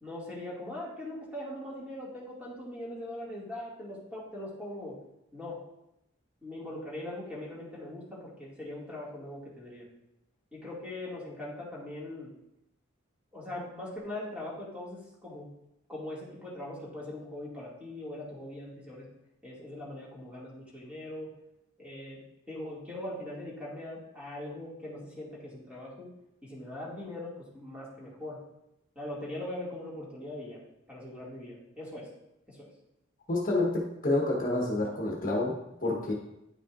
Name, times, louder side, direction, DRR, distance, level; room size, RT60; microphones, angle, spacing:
voice 1, 0.0-5.0 5.3-5.6 6.4-9.8 10.5-12.3 13.3-15.5 15.9-19.1 19.4-21.3 21.8-22.2 22.5-26.1 26.4-28.4 29.0-30.6 30.9-32.1 32.5-32.7, left 1 dB, 5° right, -6 dB, 2.1 m, -41 dB
voice 2, 33.3-36.1, left 2 dB, 45° left, -2 dB, 1.2 m, -29 dB
9.9 x 5.7 x 2.5 m, 0.84 s
head